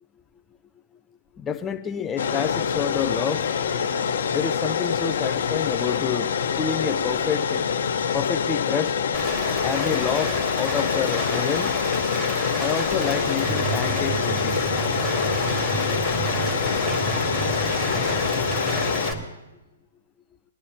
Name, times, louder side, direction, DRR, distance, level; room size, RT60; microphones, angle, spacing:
voice 1, 1.4-3.5 4.3-6.3 6.6-7.7 8.1-9.0 9.6-11.7 12.6-14.6, left 8 dB, 20° left, 8 dB, 0.5 m, -28 dB
sound 1, 2.2-19.1, left 7 dB, 65° left, 1.1 m, -25 dB
Rain, 9.1-19.1, equal, 10° right, 2.0 m, -32 dB
sound 2, 13.4-19.3, right 7 dB, 25° right, 0.5 m, -32 dB
22.0 x 11.0 x 2.9 m, 1.1 s
hypercardioid pair, 130°, 0 cm